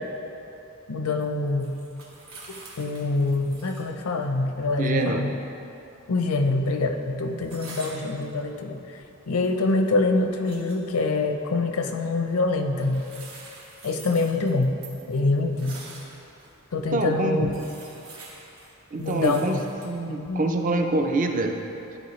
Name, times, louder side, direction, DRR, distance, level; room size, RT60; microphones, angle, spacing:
voice 1, 0.9-1.7 2.8-5.3 6.1-8.8 9.3-13.1 13.8-14.8 15.1-15.8 16.7-17.5 19.0-19.6 20.1-20.4, left 3 dB, 85° left, 5 dB, 0.6 m, -25 dB
sound 1, 1.2-3.9 4.2-4.3 7.4-8.3 9.2-9.8 10.3-10.8 12.8-16.5 17.0-17.1 17.4-20.0, right 3 dB, 70° right, 1.2 m, -46 dB
voice 2, 4.8-5.2 16.9-17.5 18.9-19.6 19.8-21.6, right 2 dB, 40° right, 4 dB, 0.5 m, -25 dB
11.0 x 4.2 x 3.1 m, 2.9 s
head